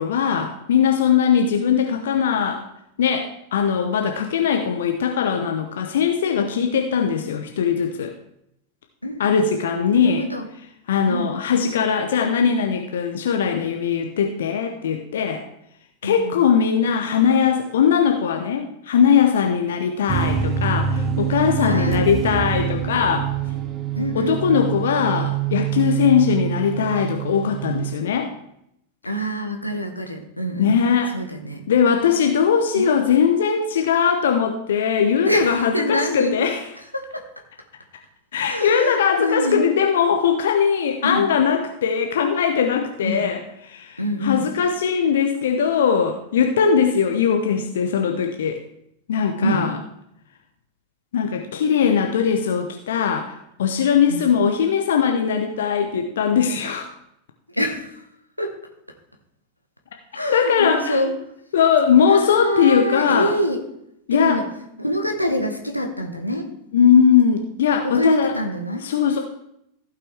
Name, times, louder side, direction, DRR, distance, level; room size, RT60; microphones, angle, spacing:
voice 1, 0.0-2.6 3.0-8.1 9.2-10.3 10.9-15.4 16.0-23.3 24.1-28.3 30.6-31.1 31.7-36.7 38.3-48.6 49.1-49.7 51.1-56.9 60.3-61.0 61.5-63.3 64.1-64.4 66.7-68.4 68.8-69.2, left 7 dB, 60° left, 4 dB, 0.8 m, -20 dB
voice 2, 9.0-10.5 11.1-11.3 16.0-16.4 21.6-22.0 24.0-24.4 29.0-30.7 31.1-31.6 32.7-32.9 35.2-36.4 36.9-37.2 38.4-39.7 41.0-41.3 43.0-43.2 44.0-44.5 49.4-49.6 54.1-54.2 57.5-57.9 58.4-58.6 60.1-61.1 62.1-63.6 64.1-64.5 64.8-66.5 67.8-68.8, equal, 85° left, 3 dB, 1.2 m, -25 dB
sound 1, 20.1-28.0, right 9 dB, 30° right, 0.7 m, -25 dB
15.0 x 5.8 x 3.5 m, 0.77 s
figure-of-eight pair, 90°, 0 cm